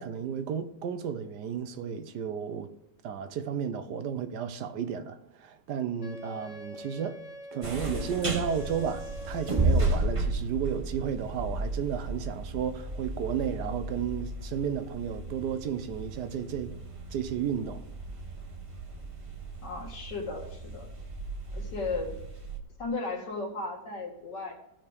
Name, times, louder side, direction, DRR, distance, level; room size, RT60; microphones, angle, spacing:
voice 1, 0.0-2.7 3.0-7.2 7.5-16.8 17.1-17.9, right 8 dB, 75° right, 1.4 m, -33 dB
Wind instrument woodwind instrument, 6.0-10.1, equal, 50° left, 1.1 m, -44 dB
sound 1, 7.6-22.6, right 2 dB, 20° right, 1.0 m, -34 dB
voice 2, 19.6-20.9 21.5-22.1 22.8-24.5, left 3 dB, 85° left, 2.7 m, -35 dB
16.5 x 5.9 x 3.5 m
omnidirectional pair, 1.8 m